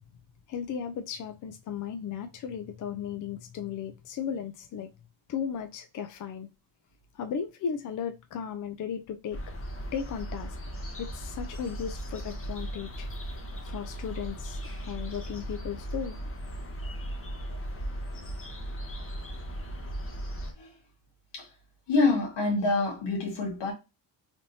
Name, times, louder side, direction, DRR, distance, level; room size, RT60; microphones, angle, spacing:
voice 1, 0.5-4.9 5.3-6.5 7.1-9.4 9.9-10.6 11.0-13.1 13.6-16.3, left 7 dB, 45° left, 0.4 m, -36 dB
sound 1, 9.3-20.5, equal, 30° left, 0.9 m, -37 dB
voice 2, 21.9-23.7, left 3 dB, 75° left, 1.5 m, -26 dB
3.4 x 2.7 x 2.7 m
cardioid pair, 95°, 44 cm